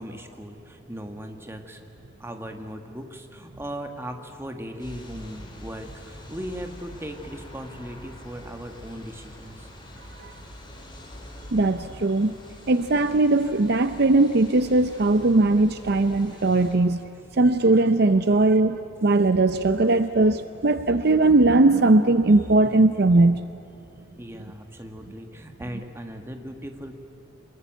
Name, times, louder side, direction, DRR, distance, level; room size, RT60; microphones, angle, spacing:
voice 1, 0.0-1.8 2.2-9.7 18.3-18.4 24.2-27.0, equal, 10° right, 5 dB, 1.6 m, -38 dB
sound 1, 4.8-16.8, left 1 dB, 25° left, 3.6 m, -45 dB
voice 2, 11.5-12.3 12.7-17.0 17.4-23.4, right 2 dB, 50° right, 11 dB, 0.6 m, -19 dB
26.5 x 21.0 x 9.2 m, 2.6 s
head